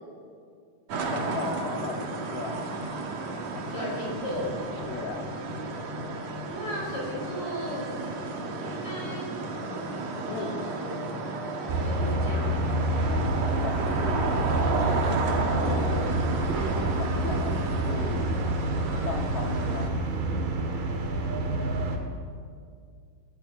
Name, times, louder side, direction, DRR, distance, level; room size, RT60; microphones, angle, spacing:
sound 1, 0.9-19.9, right 2 dB, 50° right, 2.8 m, -33 dB
voice 1, 1.1-2.6 3.5-3.9 4.9-5.3 10.2-10.6 13.0-16.1 16.6-18.4 19.0-20.6, left 4 dB, 85° left, 3 dB, 4.3 m, -37 dB
voice 2, 3.7-4.5 6.5-7.9 8.7-9.3 10.4-10.9 11.6-12.6, equal, 35° left, -3 dB, 7.3 m, -36 dB
sound 2, 11.7-22.0, right 1 dB, 75° right, 4.1 m, -28 dB
21.0 x 17.0 x 9.7 m, 2.2 s
omnidirectional pair, 4.2 m